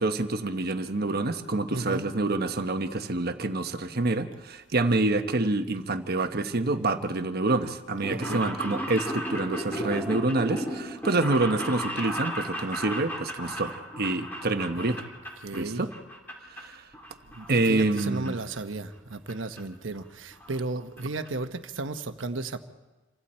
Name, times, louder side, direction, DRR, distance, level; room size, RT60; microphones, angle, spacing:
voice 1, 0.0-15.0 15.5-15.9 16.5-16.8 17.5-18.4, right 2 dB, 55° right, 1.2 m, -27 dB
voice 2, 1.7-2.1 8.1-8.5 14.8-15.0 15.4-15.9 17.3-22.6, right 2 dB, 80° right, 1.2 m, -34 dB
sound 1, 8.0-15.6 15.9-16.6 16.9-18.0 18.3-18.4 19.3-19.4 19.6-19.7 19.9-20.0 20.3-20.6 21.0-21.1 21.3-21.4, equal, 10° left, 3.8 m, -35 dB
28.5 x 25.0 x 4.4 m
head